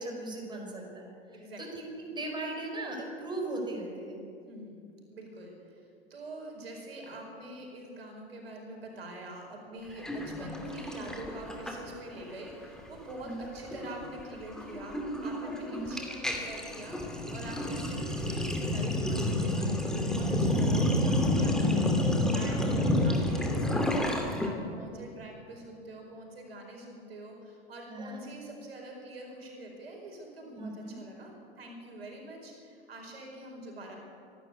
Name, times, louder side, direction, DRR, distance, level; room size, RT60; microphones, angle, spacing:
voice 1, 0.0-1.1 1.6-4.2 13.2-13.4 15.7-15.9 20.4-20.6 22.5-22.8 27.9-28.2 30.6-31.0, right 2 dB, 15° right, 0 dB, 5.1 m, -38 dB
voice 2, 1.3-1.9 4.5-4.8 5.1-31.3 31.6-34.0, right 1 dB, 70° right, 1 dB, 5.2 m, -45 dB
Sink (filling or washing), 10.0-12.2 12.5-12.8 13.1-24.5, left 1 dB, ahead, 2.5 m, -29 dB
25.5 x 12.0 x 8.4 m, 2.5 s
figure-of-eight pair, 85°, 31 cm